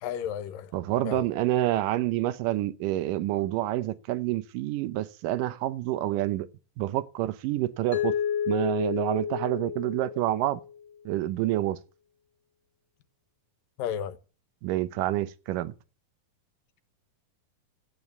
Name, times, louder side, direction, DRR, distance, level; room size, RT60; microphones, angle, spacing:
voice 1, 0.0-0.8 1.0-1.3 13.8-14.2, left 9 dB, 85° left, 2.7 m, -33 dB
voice 2, 0.7-6.5 6.8-8.1 8.5-10.6 11.1-11.8 14.6-15.7, right 14 dB, 80° right, 2.4 m, -28 dB
Mallet percussion, 7.9-10.8, left 9 dB, 40° left, 2.7 m, -31 dB
11.5 x 9.1 x 8.3 m
omnidirectional pair, 3.9 m